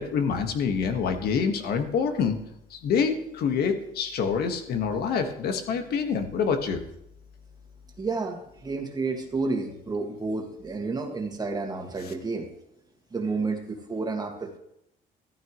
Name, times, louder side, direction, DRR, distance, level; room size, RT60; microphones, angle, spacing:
voice 1, 0.0-2.4 2.7-6.8, left 6 dB, 65° left, 6 dB, 1.6 m, -26 dB
voice 2, 8.0-12.5 13.1-14.6, right 3 dB, 25° right, 3 dB, 2.0 m, -30 dB
14.0 x 13.5 x 3.2 m, 0.78 s
cardioid pair, 110°, 17 cm